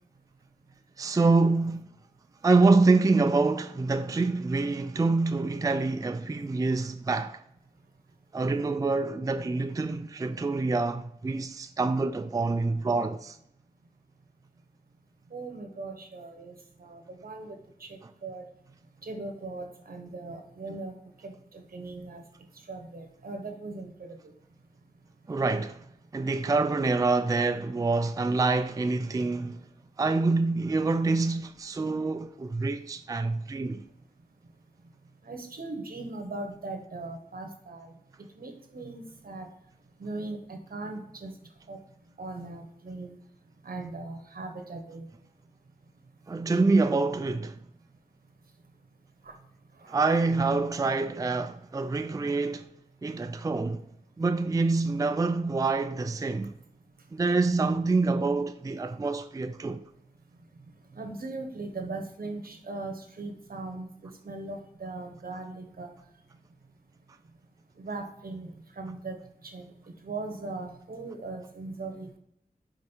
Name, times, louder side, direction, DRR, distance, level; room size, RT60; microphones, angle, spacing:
voice 1, 1.0-2.0 2.4-7.4 8.3-13.4 25.3-25.8 26.1-29.6 30.0-33.8 46.3-47.6 49.9-52.7 53.0-53.8 54.2-56.5 57.1-59.8, right 3 dB, 25° right, 0.4 m, -26 dB
voice 2, 15.3-16.5 16.8-18.5 19.0-20.9 21.2-22.2 22.7-24.2 35.2-37.9 38.4-39.5 40.0-41.3 41.7-41.8 42.2-43.1 43.6-45.1 49.9-50.0 60.9-63.9 64.2-65.9 67.8-68.5 68.8-69.2 69.4-69.7 70.0-72.2, right 3 dB, 80° right, 1.1 m, -39 dB
5.3 x 4.8 x 4.4 m
wide cardioid pair, 90°, 15 cm